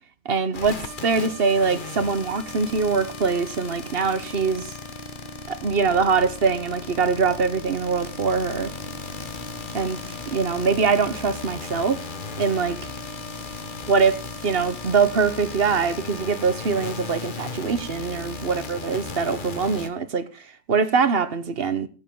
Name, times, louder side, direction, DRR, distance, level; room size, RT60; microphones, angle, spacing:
voice 1, 0.2-4.7 5.5-8.7 9.7-10.0 10.3-12.0 12.4-12.8 13.9-20.2 20.7-21.9, right 5 dB, 45° right, 1.1 m, -23 dB
sound 1, 0.5-19.9, left 3 dB, 40° left, 1.2 m, -36 dB
15.5 x 8.6 x 5.4 m
omnidirectional pair, 1.4 m